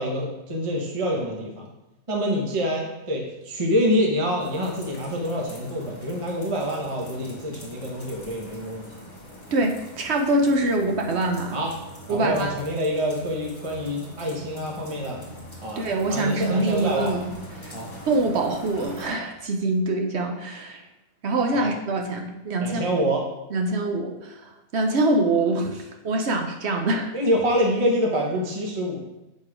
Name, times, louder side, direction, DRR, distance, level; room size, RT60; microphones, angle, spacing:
voice 1, 0.0-1.7 2.1-8.8 11.5-11.7 12.1-15.2 15.6-15.8 16.1-17.1 17.7-17.9 21.5-21.7 22.6-23.2 27.1-29.0, equal, 25° right, -1 dB, 0.8 m, -26 dB
sound 1, 4.4-19.1, equal, 25° left, 1.6 m, -42 dB
voice 2, 9.5-11.6 12.1-12.5 15.8-17.2 17.6-17.7 18.1-20.8 21.2-22.8 23.5-27.1, right 2 dB, 55° right, 3 dB, 0.8 m, -24 dB
7.4 x 4.2 x 4.9 m, 0.96 s
omnidirectional pair, 1.8 m